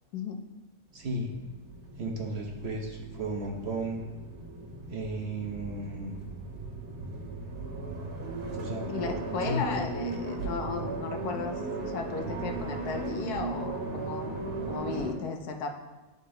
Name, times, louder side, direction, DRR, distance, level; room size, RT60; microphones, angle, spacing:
voice 1, 0.9-1.3 2.0-4.0 4.9-6.2 8.5-8.9 9.4-9.6, right 1 dB, 50° right, 0 dB, 1.1 m, -34 dB
sound 1, 0.9-15.1, right 3 dB, 90° right, 1.6 m, -37 dB
voice 2, 8.9-15.7, left 4 dB, 80° left, 4 dB, 1.3 m, -35 dB
11.5 x 3.9 x 3.8 m, 1.1 s
omnidirectional pair, 1.6 m